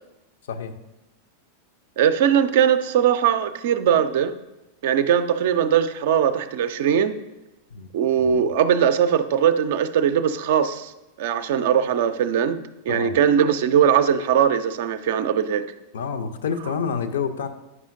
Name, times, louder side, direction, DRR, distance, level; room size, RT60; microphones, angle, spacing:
voice 1, 2.0-4.3 4.8-7.2 7.9-10.9 11.2-15.7, right 8 dB, 55° right, 10 dB, 0.4 m, -20 dB
voice 2, 8.2-8.5 12.9-13.2 15.9-17.5, left 6 dB, 60° left, 9 dB, 0.5 m, -28 dB
9.5 x 5.5 x 2.5 m, 0.96 s
figure-of-eight pair, 90°, 0 cm